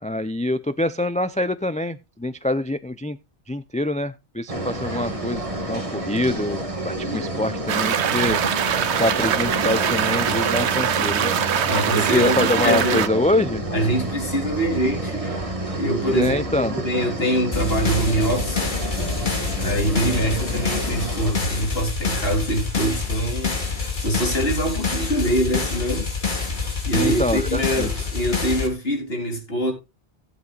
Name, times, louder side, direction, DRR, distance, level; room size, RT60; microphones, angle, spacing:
voice 1, 0.0-3.2 3.5-8.4 9.0-11.3 11.9-13.6 16.1-16.8 26.9-27.9, left 1 dB, 10° left, 0.3 m, -25 dB
sound 1, 4.5-21.3, right 1 dB, 30° right, 2.0 m, -29 dB
sound 2, 7.7-13.1, right 8 dB, 85° right, 1.1 m, -23 dB
voice 2, 11.6-13.0 13.7-15.4 15.8-26.1 26.8-29.7, right 1 dB, 65° left, 3.7 m, -24 dB
sound 3, 17.5-28.7, left 4 dB, 45° left, 2.4 m, -26 dB
17.5 x 8.1 x 2.4 m
omnidirectional pair, 1.1 m